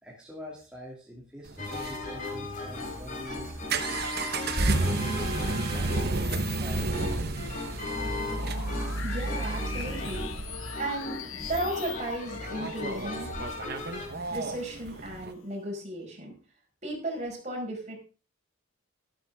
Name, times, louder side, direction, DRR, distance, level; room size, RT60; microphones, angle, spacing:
voice 1, 0.0-4.5 4.8-7.6, equal, 5° right, -4 dB, 2.7 m, -46 dB
sound 1, 1.5-15.3, right 2 dB, 50° right, 1.1 m, -32 dB
sound 2, 1.6-14.1, left 2 dB, 40° left, 3.6 m, -37 dB
sound 3, 4.5-15.4, left 7 dB, 85° left, 1.2 m, -44 dB
voice 2, 9.0-10.3 10.8-13.3 14.3-16.3 16.8-18.0, right 1 dB, 35° right, -1 dB, 5.1 m, -35 dB
13.0 x 12.5 x 3.6 m, 0.35 s
head